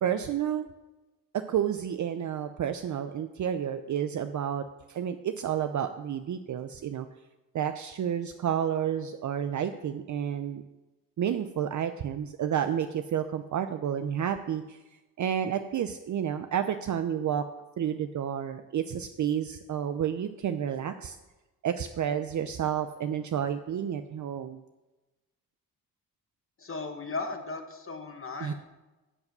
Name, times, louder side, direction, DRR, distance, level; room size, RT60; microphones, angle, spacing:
voice 1, 0.0-0.7 1.3-7.1 7.5-10.6 11.2-14.8 15.2-17.4 17.8-21.2 21.6-24.6 28.4-28.5, right 9 dB, 50° right, 9 dB, 0.6 m, -30 dB
voice 2, 26.6-28.5, left 3 dB, 35° left, 4 dB, 1.0 m, -36 dB
11.0 x 4.8 x 7.9 m, 1.1 s
cardioid pair, 95°, 37 cm